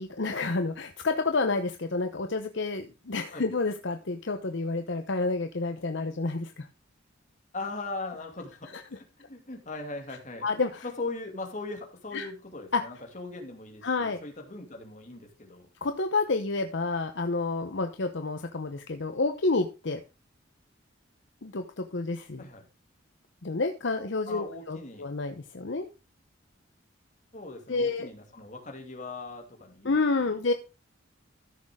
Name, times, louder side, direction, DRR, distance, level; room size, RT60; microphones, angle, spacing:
voice 1, 0.0-6.7 10.4-10.8 12.1-12.3 12.7-12.8 13.8-14.2 15.8-20.0 21.4-22.4 23.4-25.9 27.7-28.1 29.8-30.5, left 3 dB, 65° left, 7 dB, 0.9 m, -29 dB
voice 2, 7.5-10.5 10.8-15.7 22.4-22.6 24.3-25.1 27.3-30.3, left 3 dB, 40° left, 2 dB, 2.6 m, -39 dB
14.0 x 6.5 x 3.6 m, 0.30 s
head